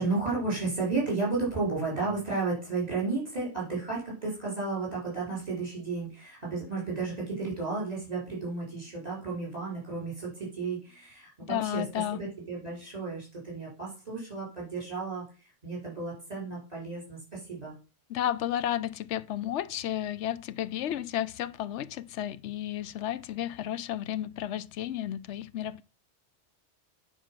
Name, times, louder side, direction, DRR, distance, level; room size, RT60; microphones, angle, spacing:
voice 1, 0.0-11.8 12.1-15.2 15.6-17.7, right 3 dB, 35° right, 4.4 m, -33 dB
voice 2, 11.4-12.2 18.1-25.8, left 11 dB, 80° left, 0.9 m, -32 dB
9.1 x 4.5 x 5.9 m
omnidirectional pair, 1.2 m